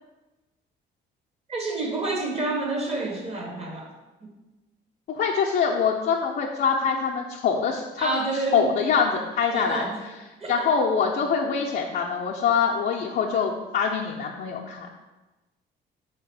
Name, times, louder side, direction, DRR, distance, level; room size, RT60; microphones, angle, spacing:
voice 1, 1.5-3.9 4.2-4.3 8.0-8.7 9.5-10.0 10.4-10.6, right 2 dB, 35° right, 0 dB, 1.0 m, -29 dB
voice 2, 5.1-8.2 8.5-9.8 10.5-14.9, left 6 dB, 55° left, -3 dB, 0.5 m, -24 dB
3.4 x 2.8 x 4.6 m, 1.1 s
cardioid pair, 100°, 19 cm